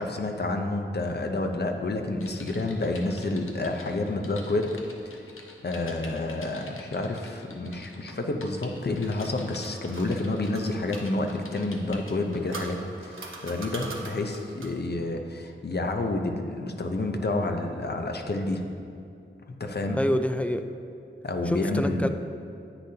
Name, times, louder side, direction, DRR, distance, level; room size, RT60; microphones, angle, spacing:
voice 1, 0.0-4.7 5.6-18.7 19.5-20.0 21.2-22.1, left 2 dB, 55° left, 4 dB, 0.8 m, -29 dB
Typing, 2.2-12.9 13.4-13.6, left 2 dB, 90° left, 0.9 m, -47 dB
sound 1, 8.7-11.1 12.0-14.9, right 3 dB, 75° right, 1.0 m, -42 dB
voice 2, 20.0-20.7 21.5-22.1, equal, 5° left, 8 dB, 0.4 m, -26 dB
10.0 x 8.4 x 2.9 m, 2.5 s
wide cardioid pair, 60°, 21 cm